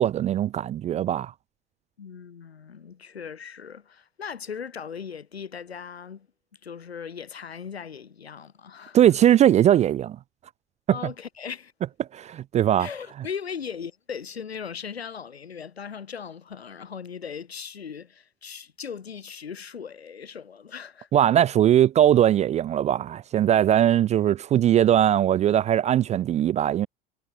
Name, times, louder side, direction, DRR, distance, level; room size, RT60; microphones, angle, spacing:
voice 1, 0.0-1.3 8.9-10.2 12.1-12.9 21.1-26.9, right 11 dB, 25° right, 0.3 m, -20 dB
voice 2, 2.0-6.3 6.6-9.0 10.9-11.7 12.8-21.1, left 7 dB, 85° left, 3.8 m, -38 dB
hypercardioid pair, 80°, 31 cm